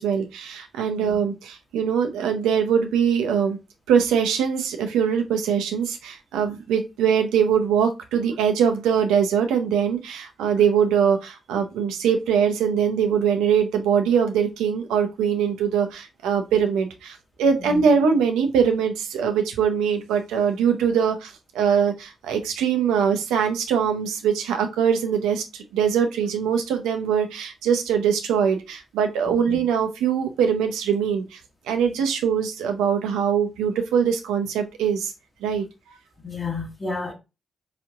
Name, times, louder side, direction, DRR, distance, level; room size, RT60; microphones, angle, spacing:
voice 1, 0.0-3.6 3.9-31.4 31.7-35.1 35.4-35.6, right 7 dB, 85° right, 0.5 m, -22 dB
voice 2, 29.3-29.6 36.2-37.1, left 4 dB, 35° left, 1.1 m, -31 dB
4.1 x 2.9 x 2.3 m
hypercardioid pair, 40°, 0 cm